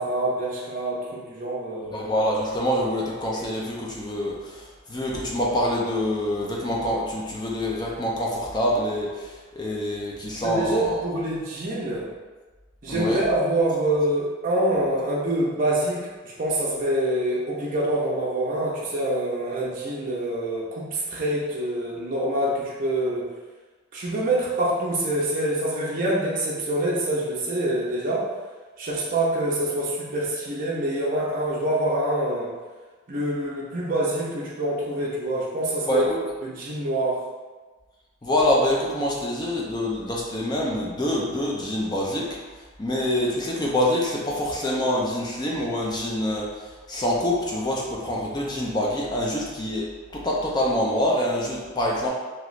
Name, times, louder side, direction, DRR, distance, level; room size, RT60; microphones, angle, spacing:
voice 1, 0.0-2.1 10.4-12.1 12.8-23.3 23.9-28.3 28.8-32.5 33.1-36.0 36.4-37.2, right 1 dB, 40° right, -6 dB, 0.5 m, -26 dB
voice 2, 1.9-10.9 12.9-13.2 35.9-36.2 38.2-42.3 42.8-46.5 46.9-49.9 50.1-52.1, left 1 dB, 20° left, -3 dB, 0.5 m, -25 dB
3.0 x 2.8 x 2.5 m, 1.3 s
head